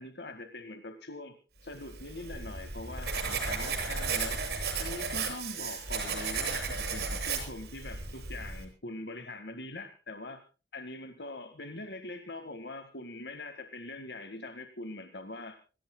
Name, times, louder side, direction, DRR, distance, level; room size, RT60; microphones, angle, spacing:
voice 1, 0.0-1.4 1.6-4.4 4.8-10.4 10.7-15.6, left 2 dB, 75° left, 8 dB, 1.9 m, -43 dB
Writing, 1.9-8.7, right 4 dB, 65° right, 6.9 m, -34 dB
26.0 x 17.5 x 2.3 m, 0.34 s
head